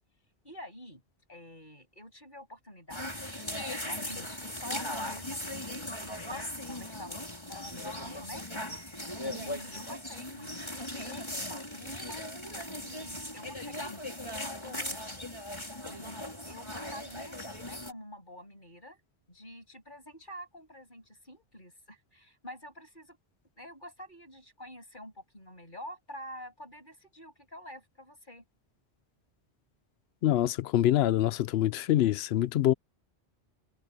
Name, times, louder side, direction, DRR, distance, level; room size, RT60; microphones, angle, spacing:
voice 1, 0.4-1.0 1.3-8.5 9.2-12.3 12.8-15.2 15.9-19.0 19.3-23.2 23.6-28.4, equal, 50° left, 7.3 m, -48 dB
sound 1, 2.9-17.9, left 1 dB, 25° left, 5.0 m, -38 dB
voice 2, 30.2-32.7, left 12 dB, 75° left, 0.8 m, -25 dB
omnidirectional pair, 1.1 m